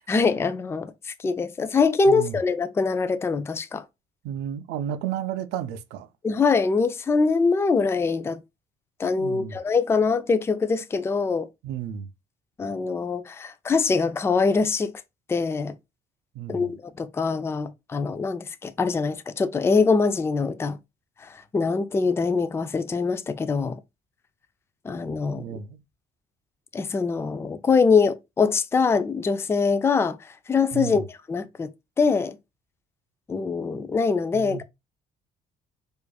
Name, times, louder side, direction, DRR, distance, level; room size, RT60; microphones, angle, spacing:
voice 1, 0.1-3.8 6.2-8.4 9.0-11.5 12.6-14.9 15.3-15.7 16.5-20.8 21.2-23.8 24.8-25.4 26.7-31.7 32.0-32.4 33.3-34.6, left 4 dB, 15° left, 0.3 m, -23 dB
voice 2, 2.1-2.4 4.2-6.1 9.2-9.6 11.6-12.1 16.3-16.7 25.3-25.8 30.7-31.1 34.3-34.6, right 10 dB, 85° right, 0.5 m, -32 dB
4.8 x 2.5 x 2.3 m
cardioid pair, 110°, 17 cm